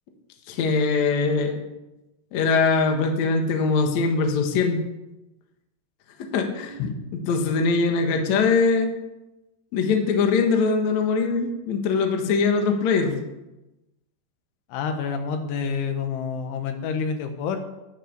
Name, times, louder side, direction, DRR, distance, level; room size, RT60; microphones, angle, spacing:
voice 1, 0.5-1.6 2.3-4.8 6.3-6.8 7.1-8.9 9.7-13.2, left 4 dB, 60° left, 3 dB, 1.9 m, -22 dB
voice 2, 14.7-17.6, left 6 dB, 85° left, 7 dB, 3.6 m, -28 dB
11.0 x 9.8 x 6.7 m, 0.98 s
omnidirectional pair, 5.4 m